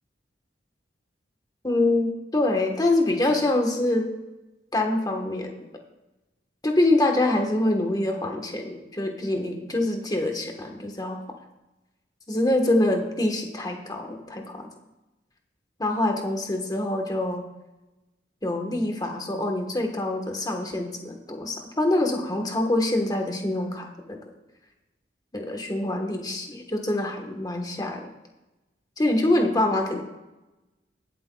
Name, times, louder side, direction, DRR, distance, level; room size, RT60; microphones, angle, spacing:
voice 1, 1.6-4.1 4.7-5.5 6.6-11.2 12.3-14.7 15.8-17.5 18.4-24.3 25.3-28.1 29.0-30.0, left 1 dB, 20° left, 3 dB, 1.2 m, -25 dB
21.0 x 7.9 x 2.3 m, 1.0 s
head